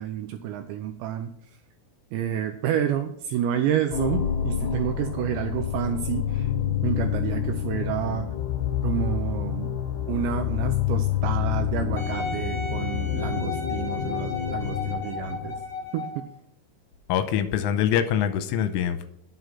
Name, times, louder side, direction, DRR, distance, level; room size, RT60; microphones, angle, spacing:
voice 1, 0.0-1.3 2.1-6.5 6.8-8.3 8.8-9.7 10.1-15.6 15.9-16.3, right 10 dB, 85° right, 7 dB, 2.5 m, -29 dB
sound 1, 3.9-15.8, left 10 dB, 70° left, 3.1 m, -28 dB
Wind instrument woodwind instrument, 12.0-16.3 16.9-17.0, left 3 dB, 25° left, 3.7 m, -35 dB
voice 2, 17.1-19.1, left 9 dB, 85° left, 10 dB, 3.2 m, -24 dB
10.0 x 7.7 x 5.6 m, 0.70 s
omnidirectional pair, 5.8 m